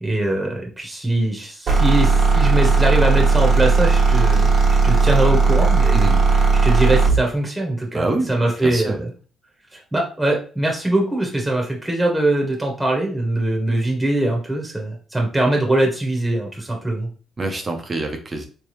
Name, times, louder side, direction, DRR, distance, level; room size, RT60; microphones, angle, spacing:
voice 1, 0.0-6.1 6.6-9.1 9.7-17.1, right 1 dB, 10° right, 0 dB, 1.2 m, -22 dB
sound 1, 1.7-7.2, right 4 dB, 55° right, 1.2 m, -16 dB
voice 2, 5.9-6.2 7.9-8.3 8.6-9.0 17.4-18.5, right 2 dB, 35° right, 4 dB, 0.9 m, -25 dB
3.3 x 3.3 x 3.1 m, 0.38 s
cardioid pair, 90°, 0 cm